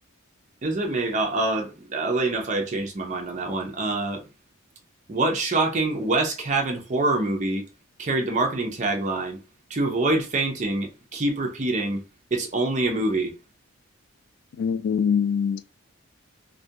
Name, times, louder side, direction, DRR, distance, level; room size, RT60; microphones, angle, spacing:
voice 1, 0.6-4.2 5.1-7.6 8.0-9.4 9.7-12.0 12.3-13.3, right 2 dB, 35° right, 0.5 m, -25 dB
voice 2, 14.6-15.6, left 7 dB, 80° left, 0.3 m, -23 dB
2.4 x 2.2 x 2.6 m
head